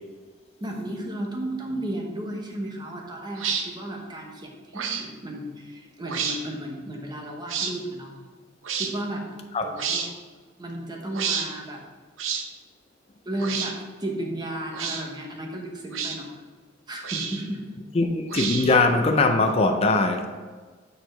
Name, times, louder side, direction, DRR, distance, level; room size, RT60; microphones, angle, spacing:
voice 1, 0.6-8.1 8.7-9.2 9.6-10.1 10.6-11.8 13.2-16.3 16.9-17.6, right 1 dB, 20° right, 0 dB, 1.1 m, -34 dB
sound 1, 3.4-3.6 4.7-5.0 6.0-6.4 7.5-7.7 8.6-8.9 9.8-10.1 11.1-11.5 12.2-12.4 13.4-13.7 14.7-15.0 15.9-16.2 17.0-17.5 18.3-18.8, right 6 dB, 85° right, 0.7 m, -29 dB
voice 2, 17.9-20.3, left 3 dB, 30° left, 4 dB, 0.5 m, -21 dB
8.3 x 4.6 x 3.8 m, 1.5 s
head